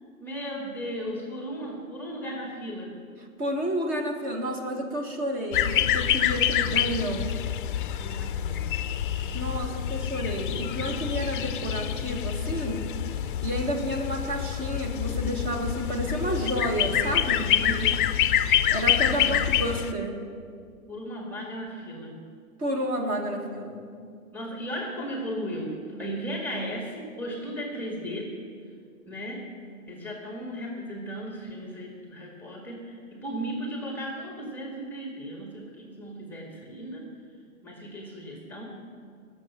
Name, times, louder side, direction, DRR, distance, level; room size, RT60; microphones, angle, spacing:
voice 1, 0.2-2.9 8.0-8.7 11.0-11.2 17.4-18.1 19.0-19.5 20.9-22.2 24.3-28.3 29.1-29.5 29.9-37.0 37.6-38.6, equal, 5° left, 0 dB, 1.8 m, -36 dB
voice 2, 3.4-7.3 9.3-12.9 13.4-17.5 18.7-20.2 22.6-23.9, equal, 20° right, 2 dB, 1.5 m, -30 dB
sound 1, 5.5-19.9, left 10 dB, 40° left, 0.6 m, -27 dB
21.5 x 7.2 x 5.7 m, 2.2 s
hypercardioid pair, 135°, 42 cm